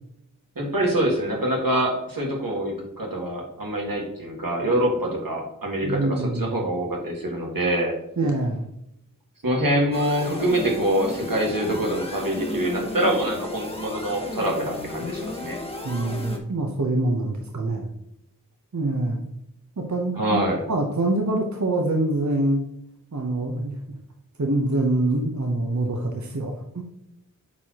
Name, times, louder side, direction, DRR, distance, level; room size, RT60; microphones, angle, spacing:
voice 1, 0.6-7.9 9.4-15.6 20.2-20.6, right 1 dB, 90° right, -1 dB, 1.9 m, -25 dB
voice 2, 5.8-6.6 8.2-8.7 15.8-17.9 18.7-19.2 19.8-20.4 20.7-22.6 23.1-23.7 24.4-26.8, right 2 dB, 60° right, 2 dB, 1.0 m, -25 dB
sound 1, 9.9-16.4, left 2 dB, 15° left, 1.2 m, -34 dB
8.4 x 4.7 x 2.9 m, 0.79 s
wide cardioid pair, 40°, 33 cm